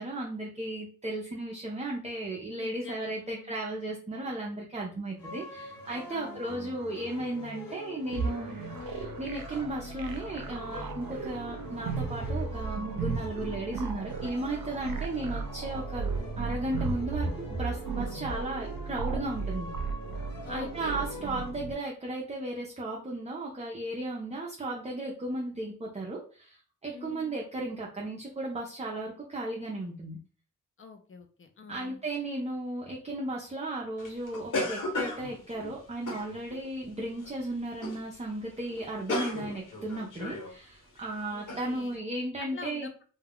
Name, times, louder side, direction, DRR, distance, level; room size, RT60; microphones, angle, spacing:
voice 1, 0.0-8.5 8.9-16.1 16.4-19.7 20.5-30.2 31.7-42.9, right 1 dB, 20° right, -2 dB, 0.6 m, -35 dB
voice 2, 2.6-3.6 6.1-6.7 20.4-21.0 26.9-27.3 30.8-32.0 41.3-42.0 42.4-43.0, left 5 dB, 40° left, 6 dB, 0.6 m, -46 dB
sound 1, 5.2-21.5, left 1 dB, 90° left, 1.0 m, -43 dB
sound 2, 8.1-21.7, right 5 dB, 75° right, 0.5 m, -35 dB
sound 3, 34.0-36.7 37.2-37.4 37.8-38.1 38.3-38.4 38.7-40.5 41.0-41.1 41.5-41.7, left 2 dB, 65° left, 1.1 m, -35 dB
2.3 x 2.2 x 3.5 m, 0.40 s
cardioid pair, 85°, 33 cm